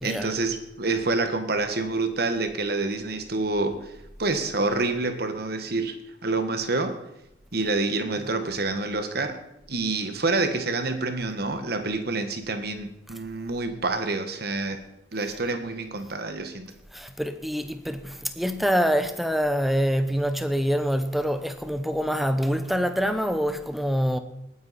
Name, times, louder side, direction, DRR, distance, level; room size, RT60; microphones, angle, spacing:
voice 1, 0.0-3.9 4.2-6.0 6.2-7.0 7.5-9.4 9.7-14.8 15.1-16.7, right 3 dB, 55° right, 1.5 m, -27 dB
voice 2, 16.9-24.2, equal, ahead, 0.8 m, -25 dB
19.0 x 9.7 x 4.3 m
head